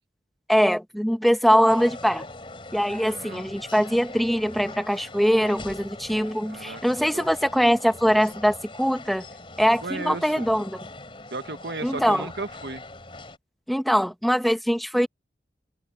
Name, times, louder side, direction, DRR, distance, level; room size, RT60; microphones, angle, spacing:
voice 1, 0.5-2.2 2.7-9.2 9.6-10.8 11.8-12.3 13.7-15.1, equal, ahead, 1.3 m, -22 dB
sound 1, 1.7-13.4, left 2 dB, 30° left, 4.3 m, -42 dB
voice 2, 3.0-3.4 6.4-7.3 9.8-10.7 11.3-12.8, right 3 dB, 70° right, 1.4 m, -35 dB
head